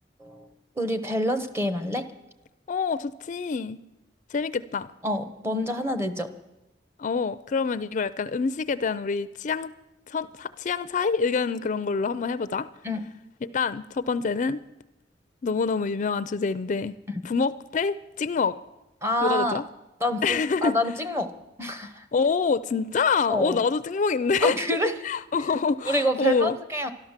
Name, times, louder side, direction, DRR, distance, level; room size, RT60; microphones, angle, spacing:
voice 1, 0.8-2.1 5.0-6.3 12.8-13.0 19.0-19.6 20.0-21.3 21.6-22.1 23.3-23.6 24.4-24.9 25.9-26.9, equal, 15° right, 1.0 m, -27 dB
voice 2, 2.7-3.8 4.3-4.9 7.0-9.7 10.1-12.7 13.4-14.6 15.4-16.9 17.2-18.6 19.2-19.6 20.2-20.8 22.1-24.7 25.0-26.6, left 5 dB, 45° left, 0.4 m, -26 dB
12.5 x 12.0 x 7.3 m
head